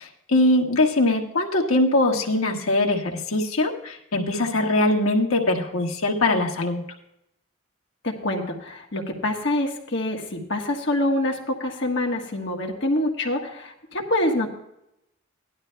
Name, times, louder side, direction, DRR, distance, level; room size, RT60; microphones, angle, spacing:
voice 1, 0.0-6.8, left 2 dB, 85° left, 1 dB, 1.6 m, -22 dB
voice 2, 8.0-14.5, left 1 dB, 55° left, 1 dB, 1.5 m, -26 dB
17.5 x 12.0 x 2.3 m, 0.81 s
head